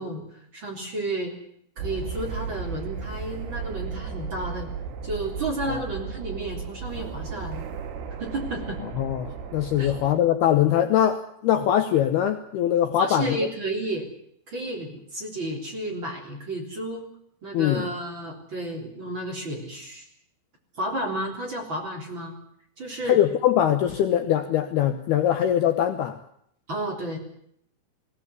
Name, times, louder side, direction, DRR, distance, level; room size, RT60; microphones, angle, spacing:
voice 1, 0.0-1.3 1.8-4.7 5.0-7.6 8.2-8.8 9.8-9.9 13.0-14.1 14.5-17.1 17.4-20.1 20.8-22.3 22.8-23.2 26.7-27.2, right 1 dB, 25° right, 1 dB, 3.7 m, -32 dB
sound 1, 1.8-10.2, right 6 dB, 90° right, 4.9 m, -35 dB
voice 2, 9.0-13.4 17.5-17.9 23.1-26.2, left 11 dB, 75° left, 7 dB, 2.5 m, -22 dB
20.5 x 17.0 x 9.6 m, 0.70 s
omnidirectional pair, 5.6 m